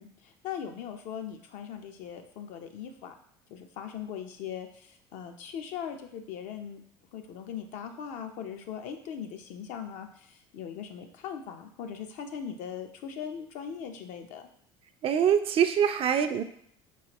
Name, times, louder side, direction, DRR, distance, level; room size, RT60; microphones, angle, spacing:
voice 1, 0.0-3.1 3.5-6.8 7.1-14.5, left 8 dB, 65° left, 5 dB, 0.6 m, -40 dB
voice 2, 15.0-16.4, right 8 dB, 45° right, 9 dB, 0.4 m, -24 dB
4.2 x 3.1 x 2.9 m, 0.65 s
supercardioid pair, 85°, 13 cm